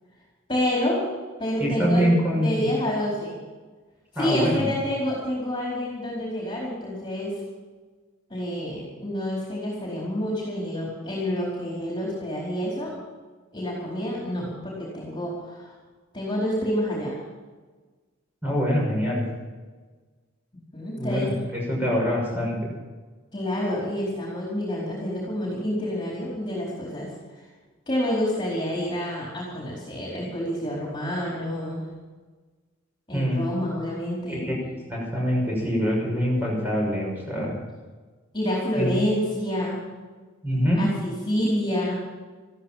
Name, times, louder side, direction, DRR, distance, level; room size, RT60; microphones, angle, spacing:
voice 1, 0.5-1.1 1.4-3.4 4.1-7.4 8.3-12.9 13.5-15.7 16.1-17.1 20.7-21.3 23.3-27.1 27.9-31.8 33.1-34.4 37.4-37.5 38.3-39.9 40.8-41.9, equal, 20° left, -4 dB, 4.5 m, -28 dB
voice 2, 1.6-2.7 4.1-4.7 18.4-19.2 21.0-22.7 33.1-33.4 34.3-37.6 38.8-38.9 40.4-40.8, equal, 10° right, -4 dB, 6.4 m, -24 dB
15.0 x 14.0 x 5.9 m, 1.4 s
head